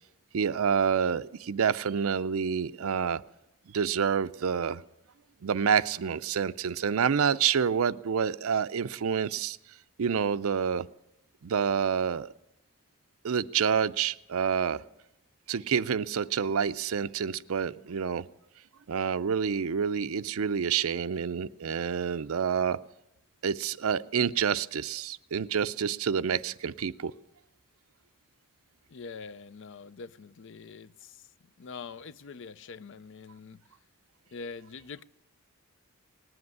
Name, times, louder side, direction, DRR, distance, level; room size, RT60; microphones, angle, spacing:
voice 1, 0.3-3.2 3.7-4.8 5.4-9.6 10.0-10.9 11.4-12.3 13.2-14.8 15.5-18.3 18.9-22.8 23.4-27.1, right 7 dB, 70° right, 0.5 m, -28 dB
voice 2, 28.9-31.3 31.6-33.6 34.3-35.0, left 5 dB, 60° left, 0.5 m, -44 dB
19.0 x 7.9 x 9.5 m
head